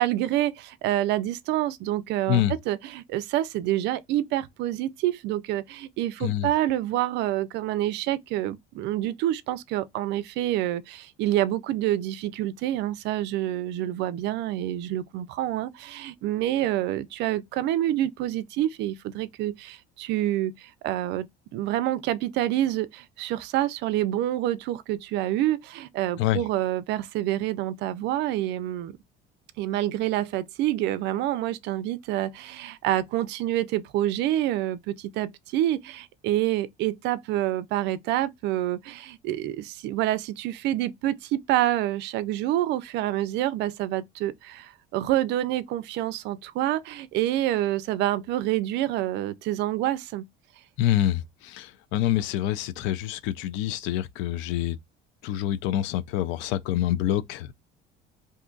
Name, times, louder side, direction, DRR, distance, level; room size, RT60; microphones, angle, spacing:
voice 1, 0.0-21.3 21.5-29.0 29.6-50.2, right 13 dB, 60° right, 0.4 m, -27 dB
voice 2, 50.8-54.8 55.2-57.5, left 12 dB, 70° left, 0.4 m, -26 dB
2.6 x 2.4 x 3.7 m
cardioid pair, 160°, 20 cm